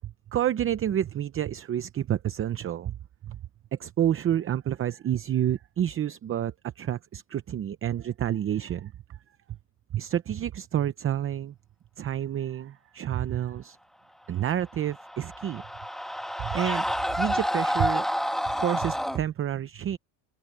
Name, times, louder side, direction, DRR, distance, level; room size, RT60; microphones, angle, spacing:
voice 1, 0.0-3.0 3.2-3.4 3.8-8.9 9.9-11.5 12.0-13.8 14.3-15.6 16.4-16.8 17.2-18.1 18.5-20.0, right 11 dB, 30° right, 0.7 m, -29 dB
Screaming, 14.7-19.2, equal, ahead, 1.5 m, -29 dB
open air
cardioid pair, 130°, 44 cm